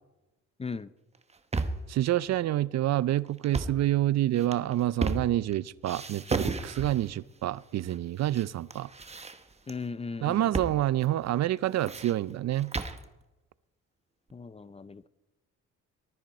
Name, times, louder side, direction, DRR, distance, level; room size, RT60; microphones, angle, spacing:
voice 1, 0.6-0.9 9.7-10.7 14.3-15.1, left 4 dB, 20° left, 0.5 m, -38 dB
Breaking a door or dropping books, 1.1-1.9 3.4-3.8 4.4-5.5 5.8-7.1 7.9-8.4 8.7-9.7 10.5-10.8 11.0-11.1 11.6-13.0, right 3 dB, 20° right, 1.1 m, -34 dB
voice 2, 1.9-8.9 10.2-12.7, right 14 dB, 60° right, 0.5 m, -28 dB
19.0 x 13.0 x 4.3 m
cardioid pair, 90°, 30 cm